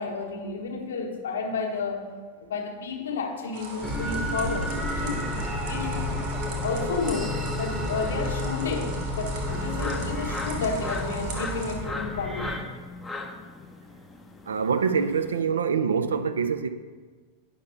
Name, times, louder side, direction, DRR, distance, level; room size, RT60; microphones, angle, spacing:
voice 1, 0.0-2.1 2.4-6.1 6.6-12.6, left 4 dB, 65° left, 1.0 m, -32 dB
sound 1, 3.5-11.7, right 3 dB, 50° right, 1.7 m, -39 dB
sound 2, 3.8-12.6, left 1 dB, 10° right, 0.9 m, -31 dB
sound 3, 9.5-15.4, left 3 dB, 10° left, 0.6 m, -38 dB
voice 2, 14.5-16.7, right 6 dB, 70° right, 0.4 m, -25 dB
9.4 x 5.7 x 3.4 m
figure-of-eight pair, 90°, 0 cm